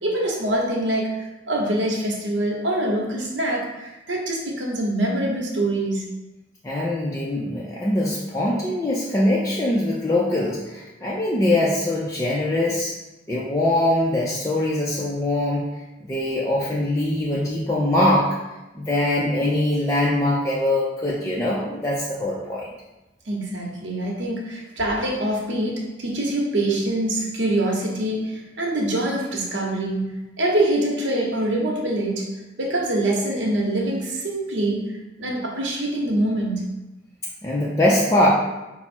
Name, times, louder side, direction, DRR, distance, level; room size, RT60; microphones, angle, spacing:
voice 1, 0.0-6.1 23.3-30.1 30.4-32.3 32.6-34.9 35.2-36.7, right 1 dB, 65° right, -1 dB, 0.9 m, -24 dB
voice 2, 6.6-12.9 13.3-15.6 16.0-18.4 18.8-22.7 37.4-38.3, left 1 dB, 15° left, -6 dB, 0.4 m, -22 dB
5.7 x 2.0 x 4.2 m, 1.0 s
head